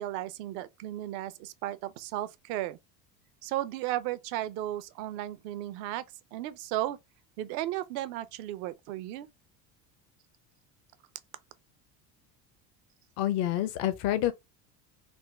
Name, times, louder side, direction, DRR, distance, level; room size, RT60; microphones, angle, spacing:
voice 1, 0.0-2.8 3.4-6.0 6.3-7.0 7.4-9.3, right 14 dB, 70° right, 0.7 m, -34 dB
voice 2, 13.2-14.3, left 12 dB, 55° left, 0.7 m, -27 dB
3.6 x 2.2 x 3.2 m
hypercardioid pair, 80°, 48 cm